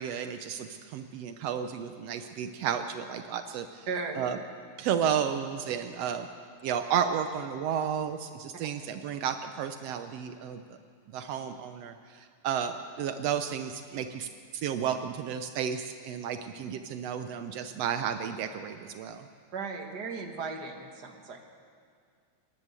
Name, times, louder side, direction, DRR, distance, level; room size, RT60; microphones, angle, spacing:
voice 1, 0.0-3.9 4.2-4.4 4.8-6.3 6.6-10.8 11.1-14.3 14.5-19.3, right 8 dB, 90° right, 8 dB, 1.4 m, -32 dB
voice 2, 3.9-4.3 19.5-21.4, right 4 dB, 40° right, 3 dB, 1.7 m, -36 dB
29.0 x 11.0 x 8.2 m, 2.1 s
omnidirectional pair, 3.9 m